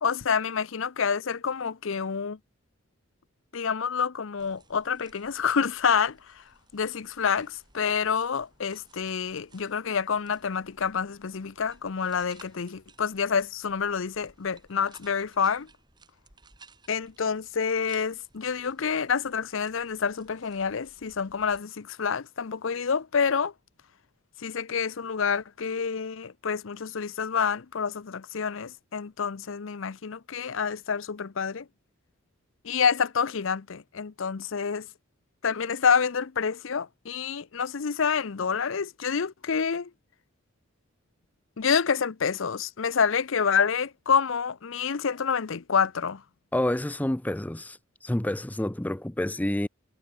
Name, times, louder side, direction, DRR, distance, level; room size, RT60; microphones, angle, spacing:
voice 1, 0.0-2.4 3.5-6.4 6.7-15.7 16.9-23.5 24.4-31.7 32.6-34.9 35.4-39.9 41.6-46.2, left 6 dB, 65° left, 0.6 m, -28 dB
sound 1, 4.4-21.6, right 3 dB, 20° right, 3.9 m, -59 dB
voice 2, 46.5-49.7, left 1 dB, 5° left, 0.5 m, -28 dB
head